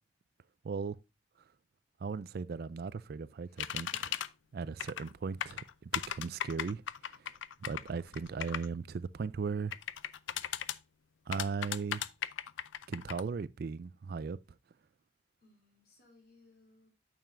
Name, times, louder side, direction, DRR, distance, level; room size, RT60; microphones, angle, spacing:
voice 1, 0.6-1.0 1.4-1.5 2.0-4.1 4.5-7.4 7.6-9.8 11.3-12.0 12.9-14.6, right 5 dB, 50° right, 0.3 m, -38 dB
voice 2, 3.4-4.1 15.4-16.9, left 2 dB, 55° left, 3.2 m, -64 dB
sound 1, 3.6-4.3 4.8-5.1 5.4-8.7 9.7-10.8 11.3-13.2, left 10 dB, 80° left, 0.4 m, -37 dB
9.1 x 6.7 x 2.5 m
head